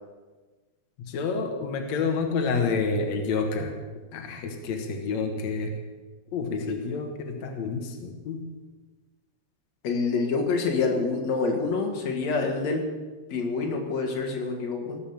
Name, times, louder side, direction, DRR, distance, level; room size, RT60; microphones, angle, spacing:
voice 1, 1.0-3.8 4.1-5.8 6.3-8.5, left 4 dB, 85° left, 4 dB, 1.5 m, -29 dB
voice 2, 9.8-12.9 13.3-15.0, left 4 dB, 50° left, 2 dB, 2.4 m, -27 dB
18.0 x 7.5 x 7.2 m, 1.3 s
omnidirectional pair, 5.1 m